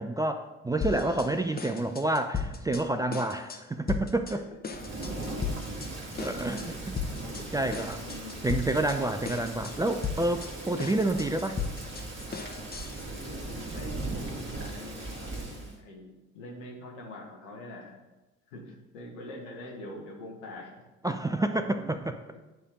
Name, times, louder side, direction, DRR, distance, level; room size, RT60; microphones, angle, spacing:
voice 1, 0.0-4.4 6.2-6.7 7.5-8.0 8.4-11.6 21.0-22.2, right 2 dB, 10° right, 7 dB, 0.4 m, -29 dB
sound 1, 0.8-1.3 1.6-2.8 3.1-3.6 3.9-4.3 4.6-5.9 6.2-6.6 7.0-7.4 7.7-9.0 9.2-9.7 10.0-13.0, left 5 dB, 25° left, 1.1 m, -35 dB
Thunder / Rain, 4.7-15.8, right 2 dB, 30° right, 1.9 m, -39 dB
voice 2, 5.2-5.6 6.2-6.8 7.1-7.5 8.0-8.4 9.1-9.2 12.9-18.0 18.5-20.7 21.6-21.9, left 1 dB, 75° left, -2 dB, 1.4 m, -44 dB
9.6 x 3.4 x 5.1 m, 1.1 s
figure-of-eight pair, 45°, 37 cm